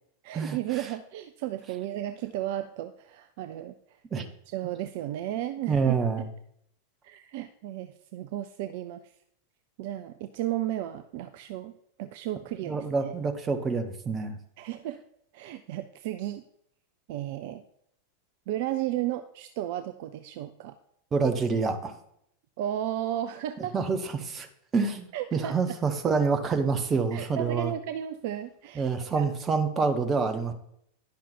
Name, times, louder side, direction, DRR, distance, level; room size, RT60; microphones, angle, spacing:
voice 1, 0.2-6.0 7.0-9.1 9.8-13.1 14.6-15.0 15.3-16.4 17.1-17.6 18.5-20.8 22.6-23.7 25.1-25.8 27.1-29.3, right 12 dB, 50° right, 10 dB, 0.4 m, -34 dB
voice 2, 5.7-6.2 12.7-14.3 21.1-21.9 23.7-24.5 24.7-25.1 25.3-27.7 28.8-30.5, right 5 dB, 20° right, 7 dB, 1.0 m, -27 dB
10.5 x 5.8 x 4.3 m, 0.73 s
figure-of-eight pair, 90°, 0 cm